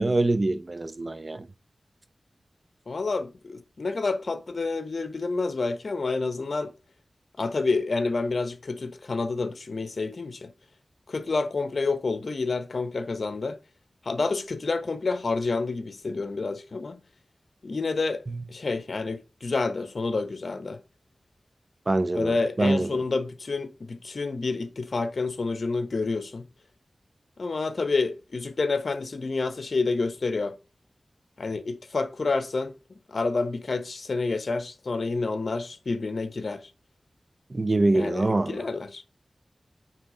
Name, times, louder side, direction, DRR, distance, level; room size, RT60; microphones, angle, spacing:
voice 1, 0.0-1.5 18.3-18.4 21.9-23.0 37.5-38.6, right 2 dB, 45° right, 0.8 m, -25 dB
voice 2, 2.9-6.7 7.4-10.5 11.1-13.6 14.0-17.0 17.6-18.2 18.5-20.8 22.1-26.4 27.4-30.5 31.4-32.7 33.1-36.6 37.9-39.0, left 3 dB, 70° left, 1.1 m, -28 dB
9.0 x 3.6 x 5.1 m
wide cardioid pair, 65°, 0 cm